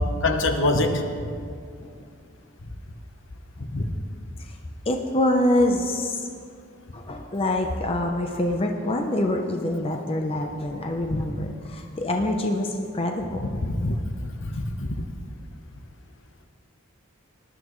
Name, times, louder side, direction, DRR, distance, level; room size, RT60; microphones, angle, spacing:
voice 1, 0.2-1.0 3.7-3.9 11.1-11.2 13.6-14.0 14.2-14.9, left 2 dB, 60° left, 6 dB, 1.0 m, -24 dB
voice 2, 4.9-6.3 6.9-13.4 13.9-14.0, left 1 dB, 25° left, 2 dB, 0.7 m, -25 dB
18.5 x 11.5 x 3.2 m, 2.2 s
head